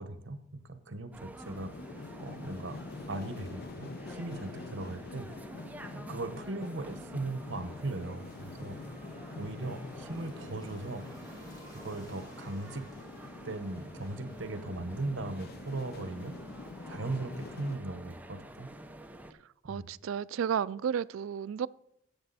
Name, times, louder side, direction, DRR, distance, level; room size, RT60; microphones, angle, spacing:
voice 1, 0.0-2.8 3.1-5.3 5.9-8.8 9.3-11.1 11.7-13.0 13.4-16.3 16.9-18.7 19.6-19.9, right 2 dB, 65° right, 1.1 m, -38 dB
sound 1, 1.1-19.3, right 1 dB, 10° right, 0.6 m, -49 dB
sound 2, 1.4-17.8, left 3 dB, 50° left, 0.5 m, -46 dB
sound 3, 4.1-18.1, left 1 dB, 20° left, 3.0 m, -57 dB
voice 2, 19.6-21.7, right 8 dB, 85° right, 0.3 m, -32 dB
15.5 x 6.8 x 4.1 m
head